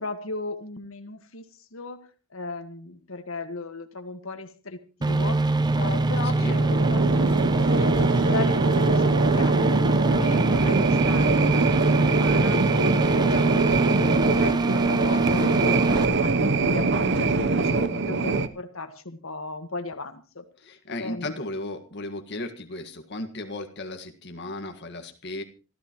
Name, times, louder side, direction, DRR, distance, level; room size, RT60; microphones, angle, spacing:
voice 1, 0.0-5.5 5.7-11.8 12.1-12.6 13.0-20.4 21.0-21.3, left 3 dB, 90° left, 7 dB, 1.7 m, -36 dB
sound 1, 5.0-16.0, right 3 dB, 20° right, 0.7 m, -24 dB
sound 2, 6.4-18.5, right 3 dB, 60° right, 0.9 m, -23 dB
voice 2, 20.6-25.4, left 2 dB, 60° left, 5 dB, 1.8 m, -35 dB
26.0 x 14.0 x 3.1 m, 0.35 s
head